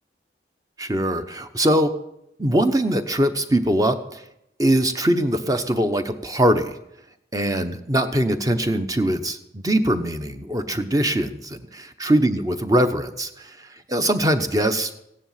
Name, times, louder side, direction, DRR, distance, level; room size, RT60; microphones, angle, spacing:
voice 1, 0.8-1.9 2.4-4.2 4.6-6.8 7.3-14.9, right 1 dB, 20° right, 8 dB, 0.9 m, -22 dB
15.5 x 10.0 x 5.8 m, 0.82 s
head